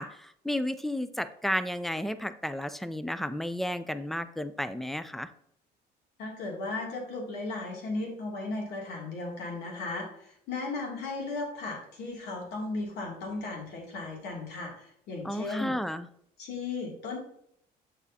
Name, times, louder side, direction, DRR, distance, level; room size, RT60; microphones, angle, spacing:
voice 1, 0.0-5.3 15.2-16.1, left 1 dB, ahead, 12 dB, 0.4 m, -32 dB
voice 2, 6.2-15.7 16.4-17.2, left 3 dB, 75° left, -1 dB, 2.6 m, -36 dB
7.3 x 6.9 x 2.8 m, 0.71 s
cardioid pair, 110°, 17 cm